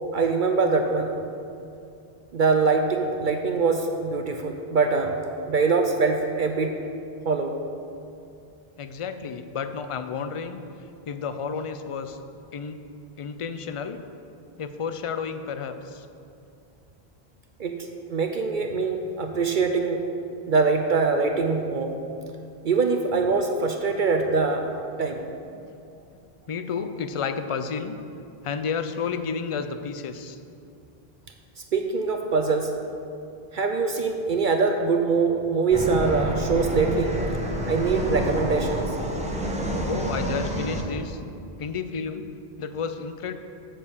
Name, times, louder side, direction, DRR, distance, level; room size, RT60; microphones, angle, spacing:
voice 1, 0.1-1.1 2.3-5.2 5.5-6.7 7.2-7.5 17.6-17.7 18.1-20.0 20.5-21.9 22.6-24.6 25.0-25.2 31.7-32.7 33.5-37.2 37.7-38.8, right 4 dB, 60° right, 4 dB, 0.7 m, -23 dB
voice 2, 8.8-10.6 11.1-12.2 12.5-12.8 13.2-14.0 14.6-16.1 25.5-25.7 26.5-28.0 28.4-30.4 39.9-41.2 41.6-42.3 42.6-43.3, left 6 dB, 45° left, 9 dB, 0.4 m, -31 dB
sound 1, 35.7-40.8, right 1 dB, 5° right, 0.9 m, -28 dB
7.6 x 6.8 x 6.8 m, 2.6 s
omnidirectional pair, 1.0 m